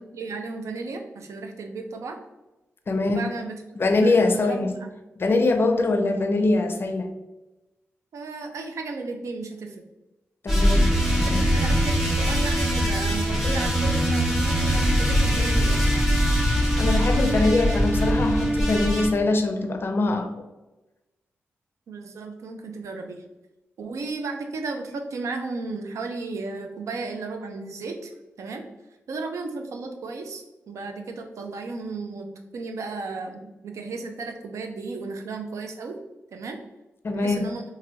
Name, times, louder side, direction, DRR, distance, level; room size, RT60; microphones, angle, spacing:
voice 1, 0.1-2.2 3.0-3.6 4.0-4.9 8.1-9.8 11.2-15.9 21.9-23.2 23.8-28.1 28.4-28.6 29.1-32.3 32.5-36.0 36.3-36.6 37.1-37.6, right 3 dB, 80° right, 4 dB, 0.4 m, -34 dB
voice 2, 2.9-3.2 3.8-4.7 5.2-7.1 10.4-11.4 16.8-20.3 37.0-37.5, left 2 dB, 45° left, 6 dB, 0.4 m, -23 dB
sound 1, 10.5-19.1, equal, 5° right, 0.9 m, -22 dB
3.0 x 2.5 x 2.6 m, 1.0 s
cardioid pair, 50°, 5 cm